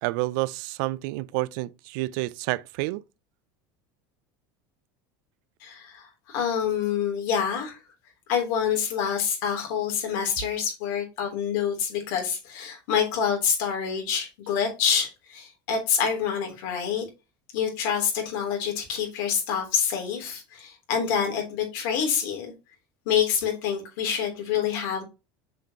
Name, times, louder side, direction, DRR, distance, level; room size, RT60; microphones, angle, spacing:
voice 1, 0.0-3.0, right 20 dB, 70° right, 0.4 m, -29 dB
voice 2, 5.6-7.8 8.3-17.0 17.5-22.5 23.1-25.0, left 7 dB, 70° left, 3.5 m, -27 dB
7.2 x 5.2 x 3.0 m
supercardioid pair, 100°, 11 cm